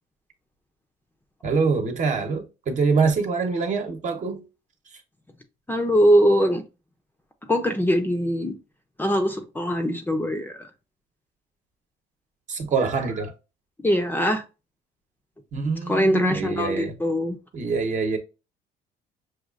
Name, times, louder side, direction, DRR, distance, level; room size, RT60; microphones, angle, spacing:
voice 1, 1.4-4.4 12.5-13.3 15.5-16.9 17.5-18.2, right 4 dB, 45° right, 1.0 m, -25 dB
voice 2, 5.7-6.6 7.5-8.6 9.0-10.7 13.8-14.4 15.9-17.4, equal, 10° left, 0.6 m, -22 dB
6.1 x 2.4 x 2.4 m
cardioid pair, 110°, 17 cm